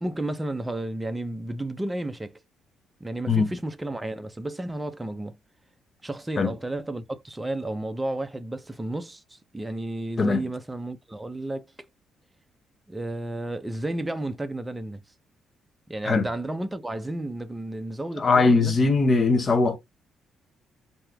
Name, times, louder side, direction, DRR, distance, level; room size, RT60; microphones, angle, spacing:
voice 1, 0.0-2.4 3.0-5.4 6.0-11.6 12.9-15.0 15.9-18.7, right 1 dB, 15° right, 0.5 m, -32 dB
voice 2, 18.2-19.8, left 3 dB, 40° left, 0.8 m, -20 dB
2.8 x 2.4 x 3.4 m
cardioid pair, 90°, 0 cm